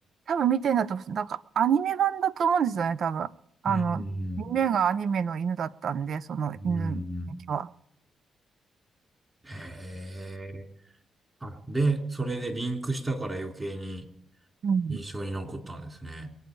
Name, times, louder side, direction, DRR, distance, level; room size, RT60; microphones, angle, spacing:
voice 1, 0.3-3.3 3.6-4.0 4.4-7.0 7.5-7.7 14.6-15.0, right 7 dB, 65° right, 18 dB, 0.6 m, -27 dB
voice 2, 3.7-4.5 6.5-7.3 9.4-10.6 11.4-14.1 14.9-16.3, right 2 dB, 25° right, 5 dB, 3.4 m, -32 dB
23.0 x 9.0 x 5.3 m, 0.72 s
supercardioid pair, 65°, 0 cm